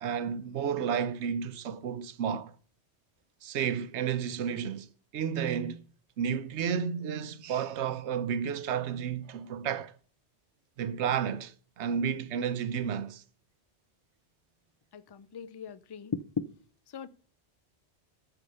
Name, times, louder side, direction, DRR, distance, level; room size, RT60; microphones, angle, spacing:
voice 1, 0.0-2.5 3.4-4.9 5.1-5.8 6.2-10.0 10.8-13.2, right 8 dB, 90° right, 1.0 m, -32 dB
voice 2, 14.9-16.5 16.9-17.1, left 6 dB, 45° left, 0.3 m, -37 dB
8.5 x 7.1 x 6.6 m
omnidirectional pair, 1.1 m